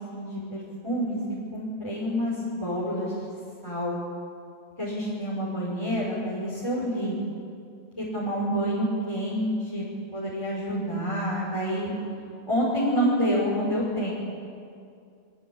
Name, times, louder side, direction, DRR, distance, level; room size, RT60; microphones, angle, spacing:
voice 1, 0.1-1.2 1.5-3.1 3.6-4.0 4.8-7.2 8.0-9.9 10.1-11.9 12.5-14.1, equal, 20° left, -7 dB, 5.5 m, -28 dB
27.5 x 23.0 x 8.7 m, 2.4 s
omnidirectional pair, 1.3 m